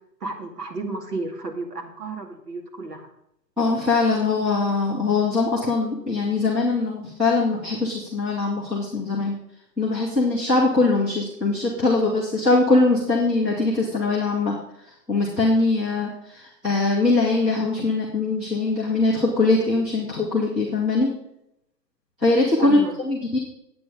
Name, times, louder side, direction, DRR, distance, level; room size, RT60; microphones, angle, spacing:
voice 1, 0.2-3.1 22.6-22.9, right 3 dB, 70° right, 3 dB, 2.3 m, -32 dB
voice 2, 3.6-9.4 9.8-21.1 22.2-22.8 23.0-23.4, left 3 dB, ahead, -10 dB, 0.5 m, -22 dB
9.4 x 8.6 x 5.0 m, 0.78 s
figure-of-eight pair, 125°, 50 cm